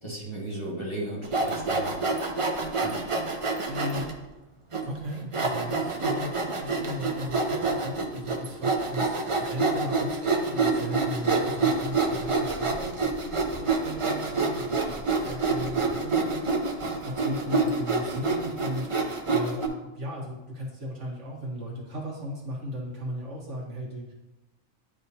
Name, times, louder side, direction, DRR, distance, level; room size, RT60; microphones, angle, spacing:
voice 1, 0.0-2.0 2.8-2.9, right 1 dB, 20° left, -7 dB, 1.6 m, -35 dB
Sawing, 1.2-4.1 4.7-4.8 5.3-19.7, right 3 dB, 40° right, 0.4 m, -27 dB
voice 2, 3.7-4.1 4.9-24.1, equal, 60° right, -3 dB, 1.6 m, -36 dB
10.5 x 3.6 x 2.8 m, 1.0 s
omnidirectional pair, 1.5 m